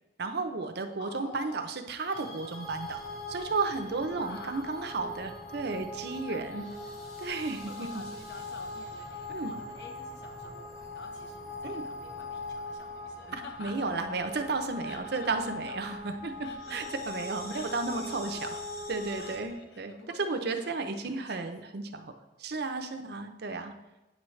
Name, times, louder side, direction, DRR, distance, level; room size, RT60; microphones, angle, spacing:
voice 1, 0.2-3.0 3.3-6.6 7.2-7.9 9.3-9.5 11.6-11.8 13.3-18.5 18.9-19.9 20.2-22.1 22.4-23.7, right 3 dB, 60° right, 7 dB, 0.6 m, -33 dB
voice 2, 1.0-1.7 4.1-5.2 6.3-6.4 7.4-13.9 14.8-16.0 16.4-17.0 17.5-18.9 19.2-21.5 22.5-22.7, left 3 dB, 70° left, 2 dB, 1.1 m, -50 dB
sound 1, 2.1-19.4, left 2 dB, 50° left, 2.8 m, -41 dB
sound 2, 2.6-19.5, equal, ahead, 0.9 m, -57 dB
8.7 x 6.2 x 3.2 m, 1.0 s
head